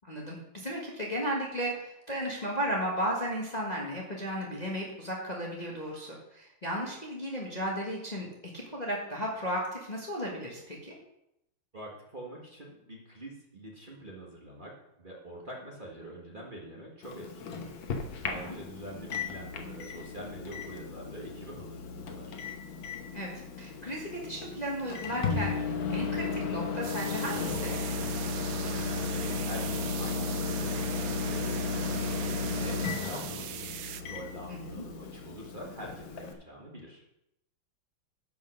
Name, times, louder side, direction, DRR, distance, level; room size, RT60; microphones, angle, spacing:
voice 1, 0.1-8.3 8.5-10.9 18.2-18.5 23.1-23.3 23.6-27.8 34.5-34.8, equal, 20° left, -3 dB, 1.4 m, -34 dB
voice 2, 11.7-22.4 28.6-37.0, right 1 dB, 25° right, -2 dB, 1.7 m, -45 dB
Microwave oven, 17.0-36.3, left 4 dB, 75° left, 1.8 m, -35 dB
sound 1, 26.8-34.0, right 10 dB, 70° right, 1.0 m, -41 dB
10.5 x 5.6 x 6.4 m, 0.84 s
omnidirectional pair, 2.2 m